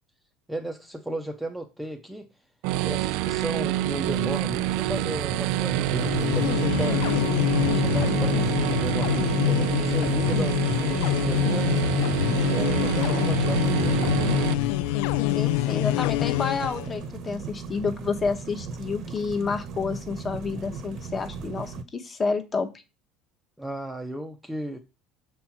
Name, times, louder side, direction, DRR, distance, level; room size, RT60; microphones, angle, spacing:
voice 1, 0.5-2.3 2.8-7.0 7.5-11.7 12.5-14.2 23.6-24.8, right 1 dB, 5° right, 0.6 m, -34 dB
sound 1, 2.6-14.5, right 16 dB, 65° right, 0.4 m, -27 dB
sound 2, 3.9-21.8, right 4 dB, 40° right, 0.9 m, -37 dB
sound 3, 5.9-16.9, left 20 dB, 70° left, 0.3 m, -25 dB
voice 2, 15.3-22.7, left 5 dB, 20° left, 1.0 m, -29 dB
7.7 x 4.3 x 5.8 m
cardioid pair, 170°, 0 cm